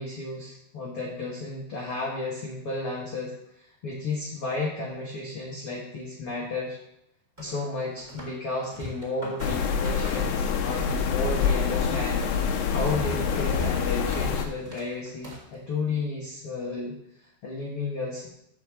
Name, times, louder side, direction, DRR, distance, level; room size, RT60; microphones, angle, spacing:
voice 1, 0.0-6.8 7.4-12.2 12.7-18.3, left 3 dB, 45° left, -4 dB, 2.1 m, -33 dB
sound 1, 7.4-8.4 8.6-10.9 11.1-15.5, equal, 5° right, 3.6 m, -39 dB
sound 2, 9.4-14.4, left 6 dB, 85° left, 3.3 m, -26 dB
9.0 x 7.0 x 7.6 m, 0.80 s
omnidirectional pair, 4.9 m